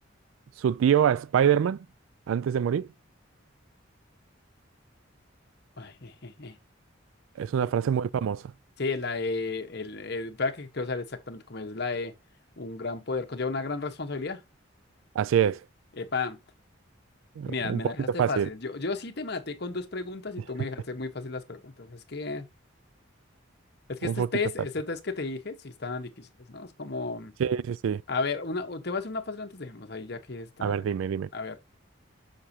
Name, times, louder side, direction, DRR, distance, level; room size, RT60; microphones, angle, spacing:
voice 1, 0.6-1.8 2.3-2.9 7.4-8.4 15.2-15.6 17.4-17.8 18.2-18.5 24.0-24.3 27.4-28.0 30.6-31.3, right 8 dB, 80° right, 0.3 m, -25 dB
voice 2, 5.8-6.6 8.8-12.1 12.6-14.4 15.9-16.4 17.5-22.5 23.9-27.3 28.1-30.9 31.3-31.6, left 3 dB, 55° left, 1.1 m, -33 dB
7.4 x 6.6 x 2.7 m
head